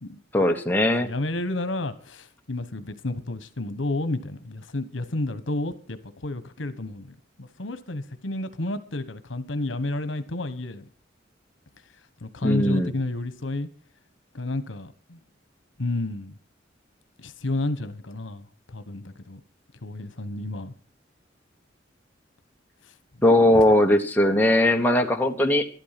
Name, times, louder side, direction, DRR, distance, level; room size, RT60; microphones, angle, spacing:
voice 1, 0.3-1.1 12.4-12.9 23.2-25.6, left 1 dB, 10° left, 1.1 m, -19 dB
voice 2, 1.0-10.9 12.2-13.7 14.3-15.2 15.8-16.4 17.2-19.4 19.8-20.7 23.5-23.6, left 2 dB, 75° left, 1.2 m, -31 dB
12.0 x 11.5 x 5.9 m
head